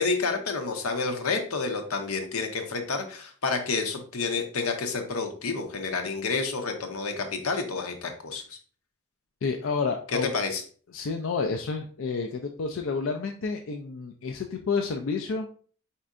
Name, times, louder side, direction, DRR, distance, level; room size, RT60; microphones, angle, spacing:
voice 1, 0.0-8.6 10.3-10.6, left 4 dB, 90° left, 5 dB, 0.8 m, -29 dB
voice 2, 9.4-10.3 10.9-15.5, left 4 dB, 65° left, 4 dB, 0.4 m, -30 dB
4.4 x 4.2 x 2.5 m, 0.43 s
head